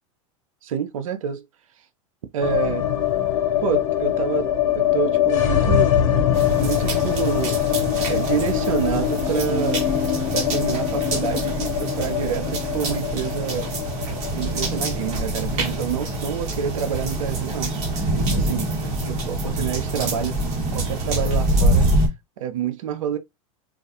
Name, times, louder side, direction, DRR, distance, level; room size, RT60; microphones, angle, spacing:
voice 1, 0.6-1.4 2.3-2.9 3.6-5.9 6.6-7.6 8.1-9.9 10.3-13.7 14.3-17.7 18.3-18.8 19.0-20.3 20.7-21.8 22.4-23.2, right 8 dB, 80° right, 0.5 m, -27 dB
sound 1, 2.4-18.5 18.8-18.9 19.1-19.9, left 10 dB, 65° left, 0.6 m, -24 dB
sound 2, 6.3-22.1, right 2 dB, 40° right, 1.1 m, -25 dB
2.3 x 2.3 x 2.7 m
hypercardioid pair, 115°, 17 cm